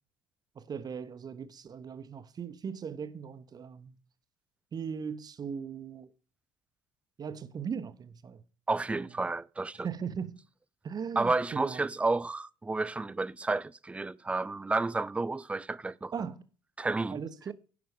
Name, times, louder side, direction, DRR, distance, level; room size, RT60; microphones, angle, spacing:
voice 1, 0.6-3.9 4.7-6.1 7.2-8.4 8.9-9.1 9.8-10.4 10.8-11.8 16.1-16.4 17.1-17.5, right 7 dB, 30° right, 0.9 m, -38 dB
voice 2, 8.7-9.9 11.2-16.3 16.8-17.2, right 3 dB, 10° right, 0.4 m, -31 dB
15.5 x 5.9 x 3.6 m
figure-of-eight pair, 55°, 13 cm